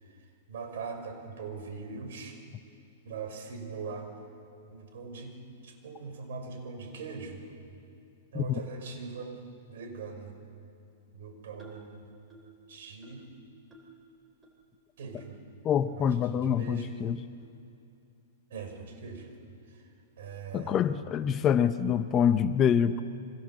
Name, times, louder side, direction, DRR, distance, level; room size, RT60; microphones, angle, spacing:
voice 1, 0.0-2.4 3.0-4.1 4.7-7.5 8.3-9.4 9.7-10.3 11.1-12.0 12.7-13.3 15.0-15.4 15.9-17.0 18.5-19.3 19.7-19.9 20.2-20.8, right 4 dB, 70° right, 5 dB, 6.0 m, -41 dB
sound 1, 11.6-11.9 12.3-12.6 13.0-13.3 13.7-14.0 14.4-14.5 15.2-15.3 15.9-16.0 16.7-16.8 17.4-17.6, right 2 dB, 10° right, 3.6 m, -54 dB
voice 2, 15.6-17.2 20.5-23.0, left 8 dB, 20° left, 12 dB, 0.7 m, -26 dB
29.5 x 24.0 x 7.6 m, 2.6 s
supercardioid pair, 160°, 0 cm